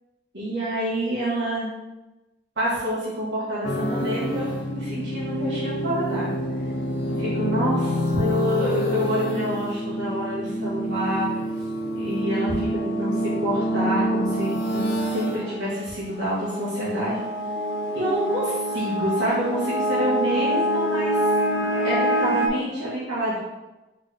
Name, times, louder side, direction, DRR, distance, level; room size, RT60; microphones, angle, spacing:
voice 1, 0.3-1.7 2.6-6.4 7.0-11.3 11.9-17.2 17.9-21.2 21.8-23.4, equal, 80° right, -10 dB, 1.5 m, -27 dB
sound 1, 3.6-22.5, equal, 75° left, 0.6 m, -26 dB
4.2 x 3.6 x 3.3 m, 1.1 s
head